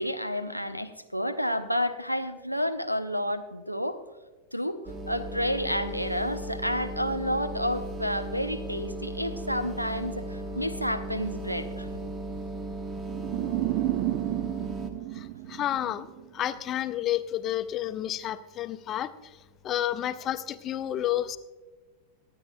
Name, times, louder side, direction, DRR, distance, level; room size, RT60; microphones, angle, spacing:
voice 1, 0.0-4.0 4.5-4.8 5.1-12.1, equal, 90° right, 13 dB, 0.7 m, -30 dB
sound 1, 4.9-14.9, right 1 dB, 20° right, 1.1 m, -36 dB
sound 2, 13.1-16.2, right 18 dB, 45° right, 0.3 m, -31 dB
voice 2, 15.1-19.4 19.6-21.4, left 12 dB, 30° left, 12 dB, 0.6 m, -31 dB
25.5 x 9.1 x 2.2 m, 1.3 s
figure-of-eight pair, 90°, 0 cm